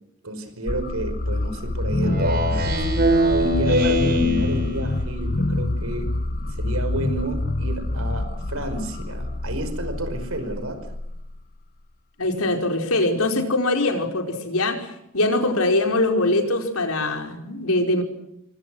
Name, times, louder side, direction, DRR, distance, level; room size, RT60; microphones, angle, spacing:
voice 1, 0.2-2.8 3.4-6.1 6.6-10.9, right 1 dB, 75° right, 9 dB, 5.4 m, -30 dB
sound 1, 0.7-11.5, left 2 dB, 40° left, 1.0 m, -27 dB
Speech synthesizer, 2.0-5.1, equal, 45° right, 3.9 m, -22 dB
voice 2, 12.2-18.0, left 2 dB, 85° left, 4 dB, 5.0 m, -22 dB
27.0 x 24.5 x 6.4 m, 0.80 s
head